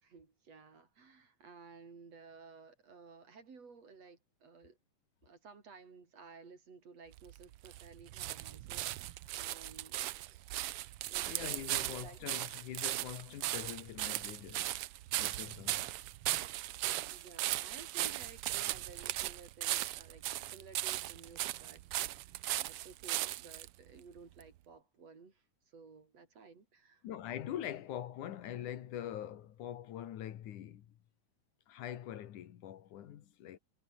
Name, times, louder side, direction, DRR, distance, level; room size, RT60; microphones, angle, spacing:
voice 1, 0.0-4.8 5.2-10.4 11.1-11.3 11.6-12.2 17.1-22.3 22.6-25.4 25.7-27.0, right 5 dB, 55° right, 5.0 m, -55 dB
sound 1, 7.1-23.7 24.4-24.5, right 15 dB, 80° right, 1.3 m, -38 dB
voice 2, 11.3-14.7 15.2-15.9 27.0-30.9 31.7-33.6, left 11 dB, 85° left, 3.0 m, -43 dB
omnidirectional pair, 3.4 m